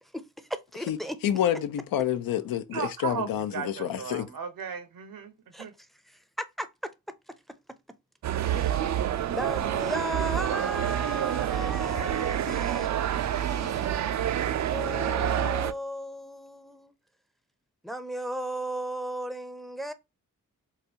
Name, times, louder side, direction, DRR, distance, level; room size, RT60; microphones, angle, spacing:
voice 1, 0.0-1.2 5.5-5.7 6.1-6.2 6.6-6.7 8.5-9.0 9.3-16.9 17.8-19.9, right 1 dB, ahead, 0.5 m, -36 dB
voice 2, 1.2-4.3, left 10 dB, 85° left, 0.6 m, -28 dB
voice 3, 2.7-3.3 3.5-5.3 5.6-5.7, right 7 dB, 80° right, 0.9 m, -35 dB
sound 1, 8.2-15.7, right 10 dB, 55° right, 0.4 m, -28 dB
3.9 x 2.3 x 2.8 m
cardioid pair, 60°, 34 cm